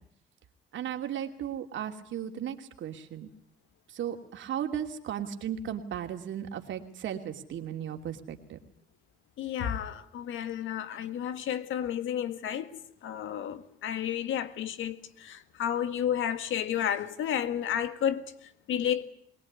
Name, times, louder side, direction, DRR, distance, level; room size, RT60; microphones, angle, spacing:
voice 1, 0.7-3.3 3.9-8.6, right 9 dB, 70° right, 2.8 m, -36 dB
voice 2, 9.4-18.3 18.7-19.0, left 9 dB, 80° left, 1.8 m, -31 dB
22.5 x 20.5 x 9.6 m
cardioid pair, 90°, 20 cm